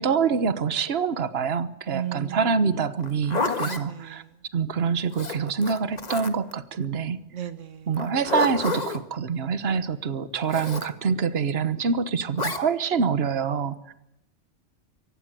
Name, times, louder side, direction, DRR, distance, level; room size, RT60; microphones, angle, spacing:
voice 1, 0.0-4.2 4.5-7.2 7.9-13.9, right 5 dB, 55° right, 12 dB, 1.4 m, -26 dB
voice 2, 1.9-2.5 3.6-4.3 7.3-7.9, right 10 dB, 80° right, 12 dB, 1.4 m, -35 dB
Zipper (clothing), 3.0-3.8 5.1-6.5 7.9-9.0 10.5-10.9 12.4-12.6, left 3 dB, 35° left, 1.7 m, -29 dB
24.0 x 18.0 x 9.2 m, 0.83 s
omnidirectional pair, 1.3 m